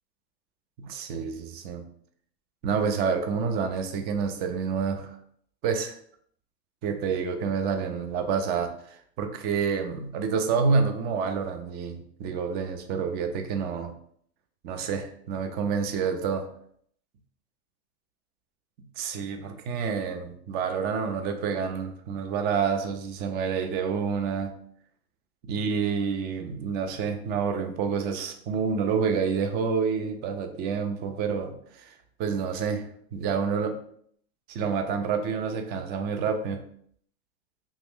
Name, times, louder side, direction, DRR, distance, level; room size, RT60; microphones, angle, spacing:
voice 1, 0.8-1.9 2.6-5.2 5.6-6.0 6.8-13.9 14.6-16.5 19.0-24.5 25.4-31.9 32.2-33.8 34.5-36.6, right 6 dB, 30° right, 6 dB, 0.4 m, -28 dB
3.1 x 2.4 x 3.5 m, 0.64 s
supercardioid pair, 130°, 32 cm